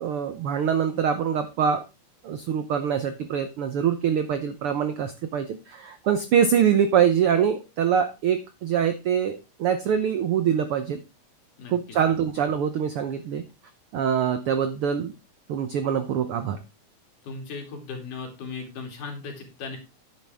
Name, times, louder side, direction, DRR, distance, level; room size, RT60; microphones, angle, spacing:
voice 1, 0.0-1.8 2.2-11.0 11.7-13.4 13.9-15.1 15.5-16.6, right 8 dB, 85° right, 10 dB, 1.2 m, -24 dB
voice 2, 17.2-19.8, left 4 dB, 75° left, 2 dB, 4.0 m, -37 dB
9.8 x 9.5 x 3.5 m, 0.27 s
omnidirectional pair, 3.7 m